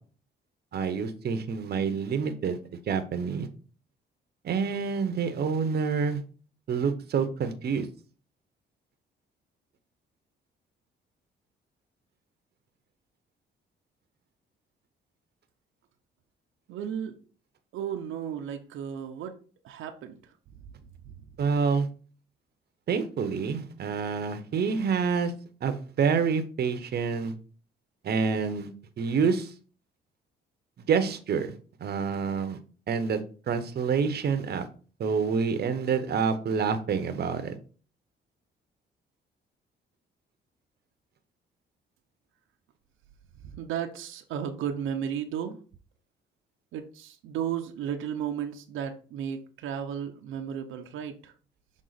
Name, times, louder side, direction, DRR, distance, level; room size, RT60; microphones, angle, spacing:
voice 1, 0.7-3.5 4.4-6.2 6.7-7.9 21.4-21.9 22.9-25.3 25.6-27.3 28.0-28.7 29.0-29.5 30.9-31.5 31.8-32.6 32.9-33.2 33.5-34.7 35.0-37.6, right 6 dB, 55° right, 9 dB, 0.8 m, -27 dB
voice 2, 16.7-17.2 17.7-19.4 19.6-20.2 43.4-45.6 46.7-51.3, right 8 dB, 85° right, 5 dB, 0.7 m, -34 dB
6.3 x 3.7 x 4.0 m, 0.39 s
cardioid pair, 90°, 20 cm